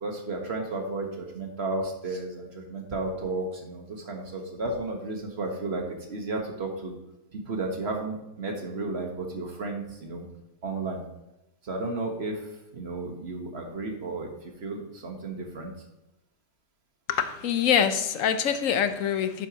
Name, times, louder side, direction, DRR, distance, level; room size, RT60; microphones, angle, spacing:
voice 1, 0.0-6.9 7.3-10.3 10.6-11.0 11.6-15.7, right 2 dB, 55° right, 2 dB, 1.6 m, -33 dB
voice 2, 17.1-19.5, left 8 dB, 90° left, 10 dB, 1.2 m, -25 dB
11.0 x 7.2 x 3.0 m, 0.94 s
omnidirectional pair, 1.3 m